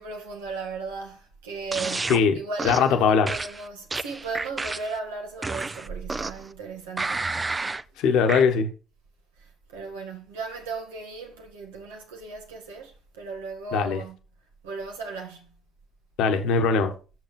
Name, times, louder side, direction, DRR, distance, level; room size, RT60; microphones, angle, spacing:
voice 1, 0.0-7.5 9.4-14.2 14.6-15.6, right 4 dB, 90° right, 1.6 m, -36 dB
sound 1, 1.7-2.2 2.6-2.9 3.3-5.0 5.4-6.5 7.0-7.8 8.3-8.4, right 3 dB, 25° right, 0.5 m, -30 dB
voice 2, 2.6-3.3 8.0-8.7 13.7-14.0 16.2-16.9, left 6 dB, 75° left, 1.3 m, -20 dB
6.6 x 6.2 x 5.3 m
hypercardioid pair, 55°, 0 cm